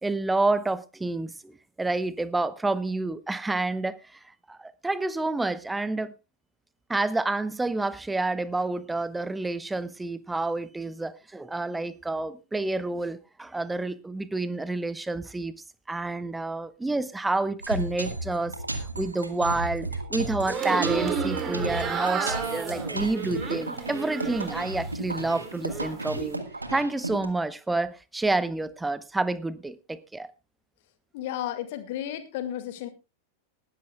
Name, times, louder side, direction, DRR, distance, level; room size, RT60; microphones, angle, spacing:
voice 1, 0.0-4.2 4.5-6.1 6.9-15.5 15.9-18.6 19.0-26.4 26.7-30.3, right 2 dB, 10° right, 0.8 m, -29 dB
sound 1, 17.6-27.3, right 2 dB, 80° right, 1.6 m, -34 dB
sound 2, 20.4-24.8 25.2-25.9, right 6 dB, 25° right, 2.7 m, -31 dB
voice 2, 31.1-32.9, left 11 dB, 50° left, 2.0 m, -33 dB
20.0 x 12.0 x 2.3 m
figure-of-eight pair, 90°, 0 cm